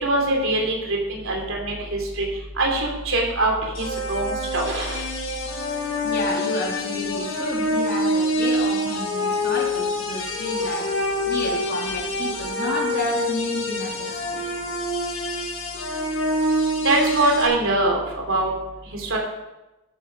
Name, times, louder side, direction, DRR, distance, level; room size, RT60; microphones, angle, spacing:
voice 1, 0.0-2.3 2.6-5.0 16.8-18.5 19.0-19.2, right 2 dB, 75° right, 0 dB, 3.5 m, -23 dB
sound 1, 3.7-17.5, left 1 dB, 75° left, 4.5 m, -26 dB
voice 2, 6.0-14.4, left 1 dB, 50° left, -1 dB, 3.1 m, -31 dB
13.0 x 9.7 x 5.6 m, 1.0 s
head